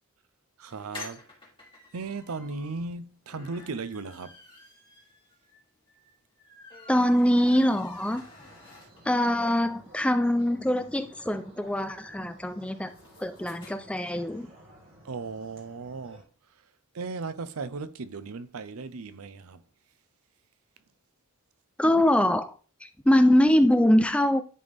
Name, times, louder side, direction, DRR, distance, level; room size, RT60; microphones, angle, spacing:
voice 1, 0.6-1.2 1.9-4.3 15.0-16.7 16.9-19.6, right 4 dB, 85° right, 0.6 m, -36 dB
sound 1, 0.7-9.3 9.7-9.8 10.0-10.1 10.3-13.7, left 3 dB, 25° left, 2.4 m, -49 dB
voice 2, 6.9-8.2 9.1-12.9 13.2-14.5 21.8-22.5 22.8-24.4, left 1 dB, 5° left, 0.5 m, -23 dB
sound 2, 7.1-16.2, right 1 dB, 65° right, 2.1 m, -54 dB
11.0 x 4.1 x 3.5 m
head